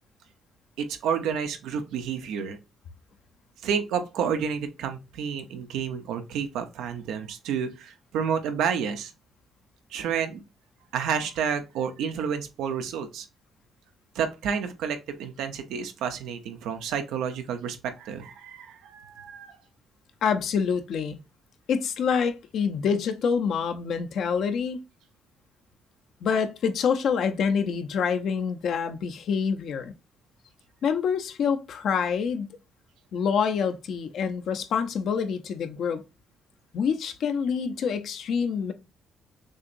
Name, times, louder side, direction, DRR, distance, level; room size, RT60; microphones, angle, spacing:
voice 1, 0.8-2.6 3.6-9.1 9.9-10.4 10.9-13.3 14.1-19.5, right 7 dB, 90° right, 0.8 m, -30 dB
voice 2, 20.2-21.2 21.7-24.8 26.2-29.9 30.8-32.6 33.1-36.0 36.7-38.7, left 6 dB, 70° left, 0.7 m, -26 dB
6.4 x 2.9 x 2.6 m
cardioid pair, 90°, 0 cm